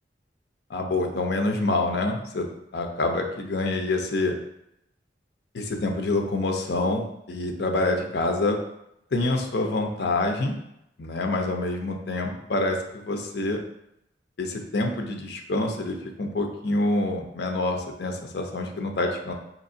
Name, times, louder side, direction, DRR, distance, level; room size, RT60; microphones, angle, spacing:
voice 1, 0.7-2.5 2.7-4.3 5.5-8.6 9.1-10.6 11.0-13.6 14.4-19.3, left 2 dB, 65° left, 3 dB, 0.6 m, -26 dB
5.2 x 2.9 x 2.7 m, 0.80 s
head